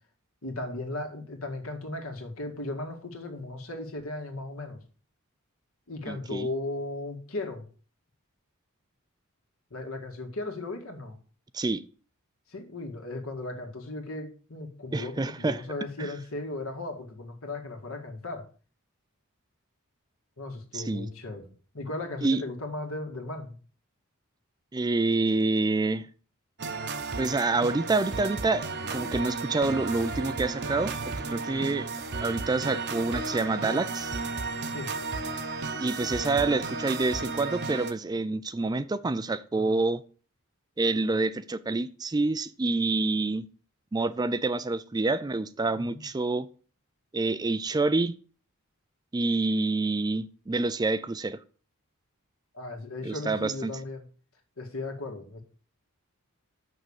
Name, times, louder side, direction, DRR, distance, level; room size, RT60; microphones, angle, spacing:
voice 1, 0.4-4.8 5.9-7.6 9.7-11.2 12.5-18.5 20.4-23.6 31.4-31.7 34.7-34.9 45.7-46.1 52.5-54.1 54.6-55.4, left 2 dB, 70° left, 2.0 m, -36 dB
voice 2, 6.1-6.5 11.5-11.8 14.9-15.6 16.0-16.1 20.7-21.1 22.2-22.4 24.7-26.1 27.2-31.9 32.2-34.1 35.8-40.0 40.8-43.5 43.9-46.5 47.1-48.1 49.1-51.4 53.0-53.7, right 3 dB, 20° right, 0.4 m, -27 dB
sound 1, 26.6-37.9, right 3 dB, 50° right, 0.9 m, -33 dB
6.6 x 6.3 x 7.1 m
head